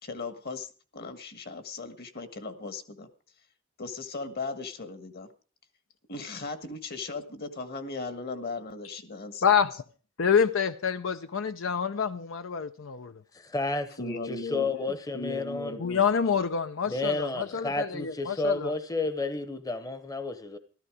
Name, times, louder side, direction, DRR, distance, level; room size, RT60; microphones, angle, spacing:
voice 1, 0.0-3.1 3.8-5.3 6.1-9.4 14.0-16.0, left 3 dB, 50° left, 1.6 m, -37 dB
voice 2, 9.4-9.8 10.2-13.2 15.8-18.7, left 7 dB, 75° left, 0.6 m, -27 dB
voice 3, 13.3-15.8 16.9-20.6, left 2 dB, 20° left, 0.9 m, -31 dB
14.0 x 13.5 x 5.0 m
head